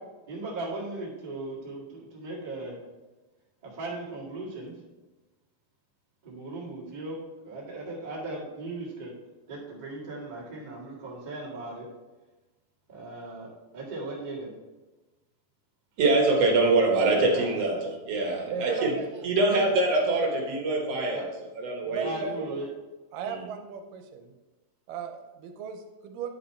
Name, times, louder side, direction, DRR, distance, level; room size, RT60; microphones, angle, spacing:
voice 1, 0.3-2.7 3.6-4.7 6.2-7.2 7.4-9.1 9.5-11.9 12.9-14.5 17.3-17.6 21.1-21.2 22.0-22.7, right 2 dB, 20° right, -5 dB, 1.3 m, -37 dB
voice 2, 16.0-18.9 19.2-22.2 23.3-23.4, right 2 dB, 60° right, 0 dB, 2.0 m, -24 dB
voice 3, 18.5-19.1 19.3-19.8 21.9-22.5 23.1-24.3 24.9-26.3, right 5 dB, 80° right, 6 dB, 2.3 m, -36 dB
9.2 x 5.3 x 4.3 m, 1.1 s
omnidirectional pair, 3.8 m